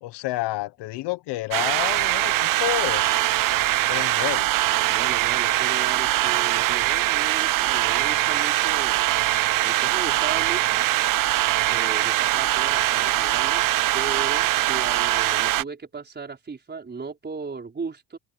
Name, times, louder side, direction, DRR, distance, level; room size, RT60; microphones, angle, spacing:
voice 1, 0.0-3.3 3.9-4.5, left 18 dB, 85° left, 1.1 m, -30 dB
sound 1, 1.5-15.6, right 16 dB, 55° right, 0.6 m, -22 dB
voice 2, 4.9-9.1 9.6-10.8 11.7-13.6 13.9-18.2, right 4 dB, 25° right, 5.0 m, -36 dB
open air
cardioid pair, 125°, 40 cm